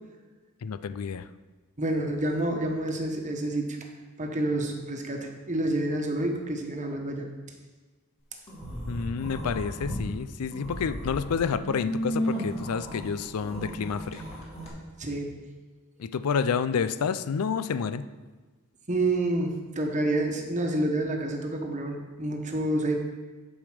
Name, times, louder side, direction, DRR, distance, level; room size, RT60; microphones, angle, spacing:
voice 1, 0.6-1.2 8.9-14.2 16.0-18.0, left 6 dB, 85° left, 13 dB, 0.4 m, -29 dB
voice 2, 1.8-3.8 4.2-7.3 10.9-11.0 15.0-15.3 18.9-23.0, right 1 dB, 35° right, 2 dB, 1.2 m, -28 dB
sound 1, 8.5-10.0 10.4-14.7, equal, 30° left, 2.3 m, -34 dB
10.5 x 5.2 x 5.0 m, 1.3 s
head